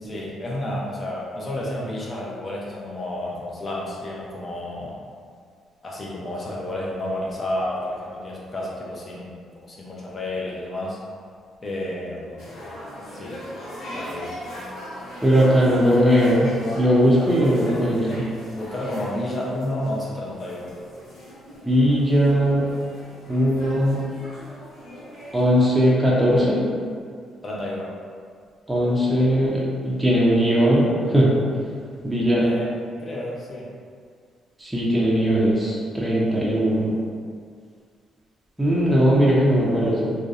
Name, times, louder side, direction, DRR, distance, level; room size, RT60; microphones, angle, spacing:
voice 1, 0.0-5.0 5.8-11.0 11.6-12.4 13.1-13.4 13.9-14.4 18.5-20.7 27.4-27.9 32.4-32.7 33.0-33.7, left 1 dB, 35° left, -5 dB, 0.6 m, -31 dB
sound 1, 12.4-25.9, left 1 dB, 80° left, 0.7 m, -39 dB
voice 2, 15.2-16.5 16.7-18.2 21.6-22.7 23.3-24.1 25.3-26.6 28.7-31.3 32.0-32.5 34.6-36.9 38.6-40.2, equal, 10° right, -6 dB, 0.5 m, -19 dB
2.5 x 2.0 x 2.4 m, 2.1 s
cardioid pair, 90°, 0 cm